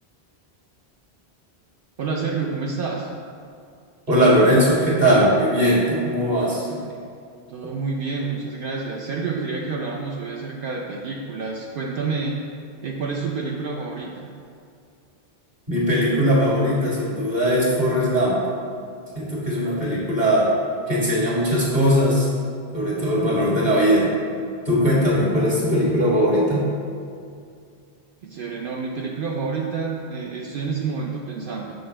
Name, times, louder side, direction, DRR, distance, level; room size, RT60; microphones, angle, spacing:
voice 1, 2.0-3.1 7.5-12.4 12.8-14.3 28.2-31.7, right 4 dB, 65° right, -1 dB, 0.7 m, -28 dB
voice 2, 4.1-6.8 15.7-18.4 19.1-20.5 20.9-22.3 22.7-24.1 24.7-26.6, equal, 45° right, -6 dB, 1.9 m, -19 dB
6.5 x 5.6 x 3.3 m, 2.4 s
omnidirectional pair, 1.0 m